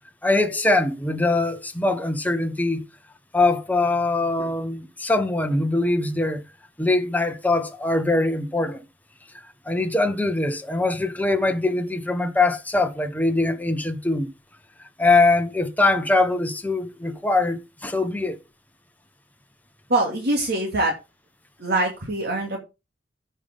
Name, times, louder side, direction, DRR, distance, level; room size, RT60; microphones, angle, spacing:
voice 1, 0.2-2.8 3.3-6.4 6.8-8.8 9.6-14.3 15.0-18.4, left 2 dB, 10° left, 1.1 m, -22 dB
voice 2, 19.9-21.0 21.6-22.6, right 2 dB, 55° right, 2.4 m, -23 dB
16.0 x 5.6 x 3.6 m
head